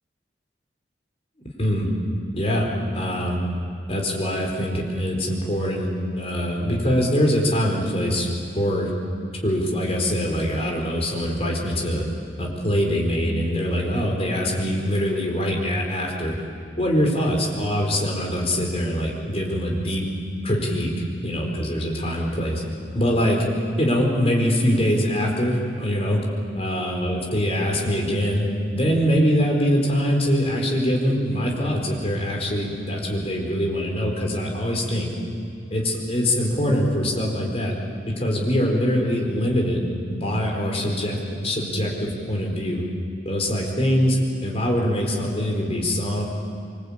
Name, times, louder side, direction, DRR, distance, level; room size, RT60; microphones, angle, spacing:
voice 1, 1.6-1.9 2.3-3.4 3.9-5.9 6.1-8.3 8.5-8.9 9.4-12.1 12.4-16.3 16.8-20.1 20.4-22.6 22.9-23.4 23.8-26.2 26.5-35.1 35.7-37.7 38.1-39.8 40.1-42.8 43.2-46.2, equal, 35° left, 0 dB, 4.6 m, -23 dB
25.5 x 24.5 x 8.8 m, 2.4 s
head